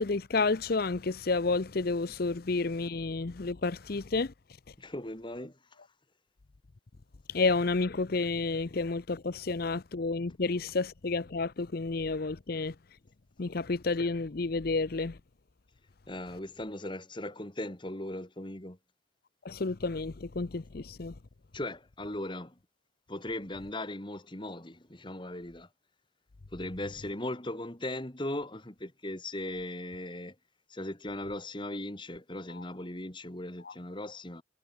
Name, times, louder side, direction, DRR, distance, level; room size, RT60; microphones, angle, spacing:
voice 1, 0.0-4.3 7.3-12.7 13.4-15.2 19.4-21.1, left 3 dB, 50° left, 0.6 m, -30 dB
voice 2, 4.8-5.8 16.1-18.8 21.5-22.6 23.1-25.7 26.5-30.4 30.7-34.4, left 1 dB, 25° left, 2.0 m, -38 dB
head